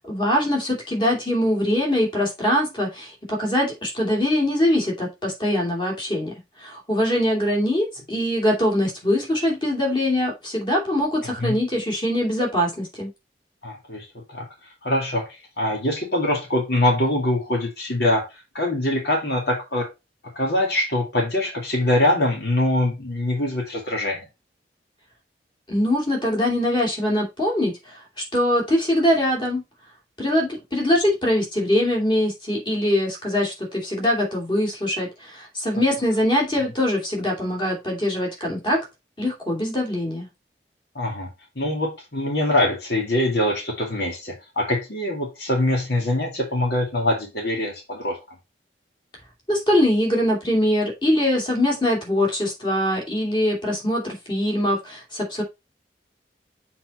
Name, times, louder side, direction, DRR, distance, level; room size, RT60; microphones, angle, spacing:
voice 1, 0.0-6.3 6.6-13.1 25.7-29.6 30.2-38.8 39.2-40.3 49.5-55.4, left 1 dB, 30° left, 2.8 m, -23 dB
voice 2, 11.2-11.6 13.6-18.3 18.5-19.9 20.2-24.2 40.9-48.2, left 1 dB, 70° left, 2.4 m, -24 dB
7.4 x 4.3 x 4.3 m
head